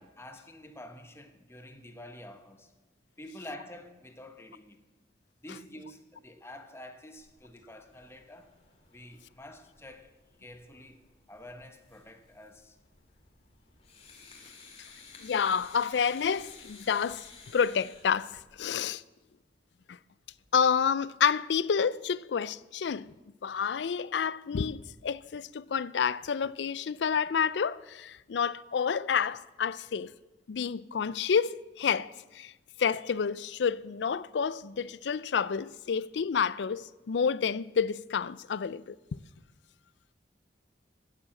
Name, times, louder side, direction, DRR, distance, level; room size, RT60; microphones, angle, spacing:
voice 1, 0.2-2.7 3.2-4.8 5.4-8.5 8.9-11.0 11.3-12.8, left 1 dB, 15° left, 1.1 m, -48 dB
sound 1, 7.2-18.7, left 4 dB, 35° left, 2.4 m, -55 dB
voice 2, 15.2-17.3 17.5-19.0 19.9-20.0 20.5-23.1 23.4-30.1 30.5-32.5 32.8-39.0, left 6 dB, 80° left, 0.4 m, -29 dB
15.0 x 7.4 x 7.6 m
head